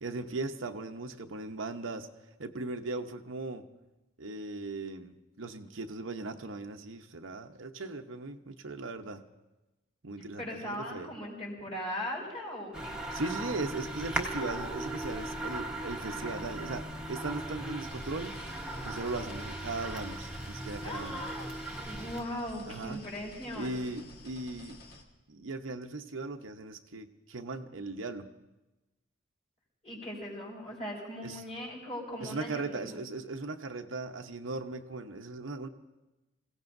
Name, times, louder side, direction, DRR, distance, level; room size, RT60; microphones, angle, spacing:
voice 1, 0.0-2.1 2.4-3.6 4.2-9.3 10.0-11.1 13.1-18.4 18.8-21.3 22.7-23.0 23.5-24.8 25.3-28.3 31.2-31.4 32.2-35.7, right 3 dB, 80° right, 5 dB, 0.9 m, -38 dB
voice 2, 10.4-13.0 16.2-16.3 20.8-21.6 21.8-23.8 29.8-32.9, left 1 dB, 30° left, -2 dB, 5.1 m, -39 dB
sound 1, 12.7-22.2, right 1 dB, 5° right, 1.2 m, -38 dB
sound 2, 17.8-25.0, left 1 dB, 50° left, 1.6 m, -51 dB
27.0 x 16.5 x 2.6 m, 1.0 s
head